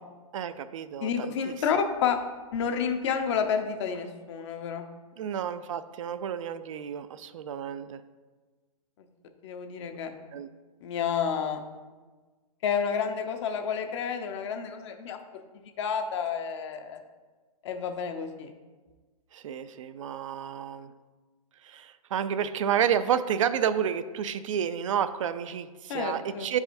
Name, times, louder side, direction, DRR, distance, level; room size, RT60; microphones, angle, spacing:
voice 1, 0.3-1.8 5.2-8.0 10.3-10.5 19.3-20.9 21.6-26.6, right 9 dB, 55° right, 12 dB, 0.4 m, -30 dB
voice 2, 1.0-2.2 2.5-4.8 9.4-10.1 10.8-11.6 12.6-15.2 15.8-17.0 17.6-18.5 25.9-26.5, left 7 dB, 50° left, 6 dB, 0.7 m, -30 dB
10.0 x 4.8 x 2.6 m, 1.3 s
hypercardioid pair, 125°, 19 cm